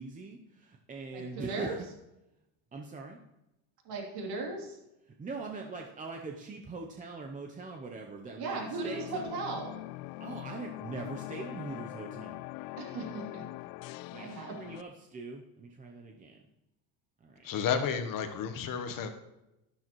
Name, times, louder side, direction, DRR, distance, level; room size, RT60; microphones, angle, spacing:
voice 1, 0.0-1.8 2.7-3.2 5.1-8.6 8.8-9.3 10.2-12.4 14.1-16.4 17.2-17.5, right 3 dB, 15° right, 0.6 m, -42 dB
voice 2, 1.1-1.8 3.8-4.8 8.4-9.8 12.8-13.4 14.2-14.6, right 3 dB, 55° right, 3.1 m, -37 dB
sound 1, 8.4-14.8, left 18 dB, 70° left, 0.6 m, -43 dB
voice 3, 17.4-19.1, left 7 dB, 45° left, 1.1 m, -31 dB
12.0 x 11.5 x 3.1 m
cardioid pair, 140°, 48 cm